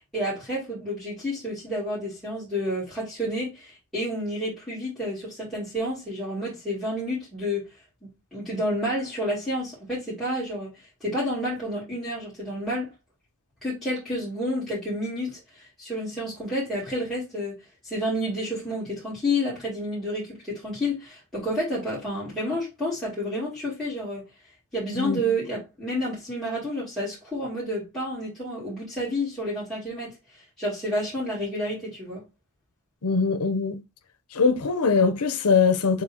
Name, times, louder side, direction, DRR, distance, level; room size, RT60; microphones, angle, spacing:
voice 1, 0.1-7.7 8.0-10.7 11.0-12.9 13.6-17.6 17.8-24.2 24.7-32.2, equal, ahead, 2.4 m, -30 dB
voice 2, 24.9-25.2 33.0-33.7 34.3-36.0, left 5 dB, 90° left, 0.7 m, -22 dB
6.7 x 2.8 x 2.8 m
head